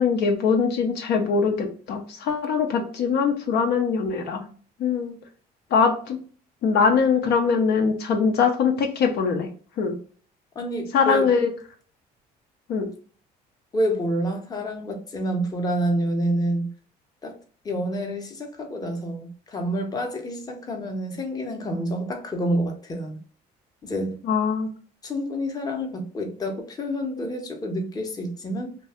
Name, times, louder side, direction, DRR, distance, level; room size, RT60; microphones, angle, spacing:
voice 1, 0.0-4.5 4.8-5.2 5.7-6.2 6.6-9.5 9.8-9.9 10.9-11.5 12.7-12.9 24.3-24.7, left 5 dB, 75° left, 0.7 m, -22 dB
voice 2, 10.5-11.3 13.7-16.7 17.2-17.4 17.6-23.2 23.8-24.2 25.0-28.8, equal, 20° left, 0.7 m, -28 dB
2.8 x 2.2 x 3.4 m
cardioid pair, 110°, 17 cm